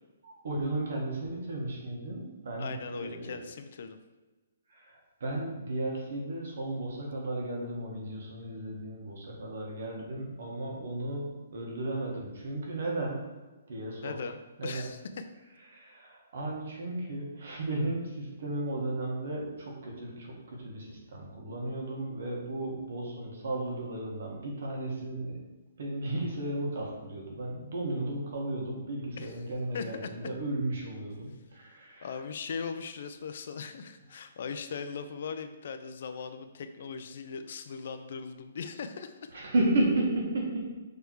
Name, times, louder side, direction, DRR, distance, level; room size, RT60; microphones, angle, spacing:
voice 1, 0.2-3.4 4.7-13.2 13.7-14.2 14.6-14.9 15.7-25.4 25.8-32.1 39.3-40.7, right 1 dB, 55° right, -1 dB, 1.7 m, -34 dB
voice 2, 2.6-4.0 14.0-15.0 29.2-29.3 29.7-30.3 32.0-39.3, left 5 dB, 45° left, 9 dB, 0.4 m, -39 dB
6.6 x 3.4 x 4.6 m, 1.2 s
hypercardioid pair, 175°, 0 cm